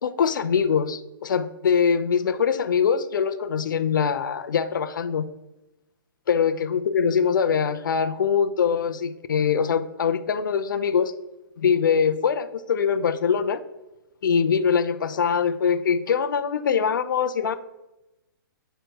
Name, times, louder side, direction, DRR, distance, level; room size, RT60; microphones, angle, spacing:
voice 1, 0.0-5.2 6.3-11.1 11.6-13.6 14.2-17.5, left 6 dB, 60° left, 10 dB, 0.6 m, -23 dB
9.0 x 3.3 x 4.5 m, 1.0 s
hypercardioid pair, 170°, 12 cm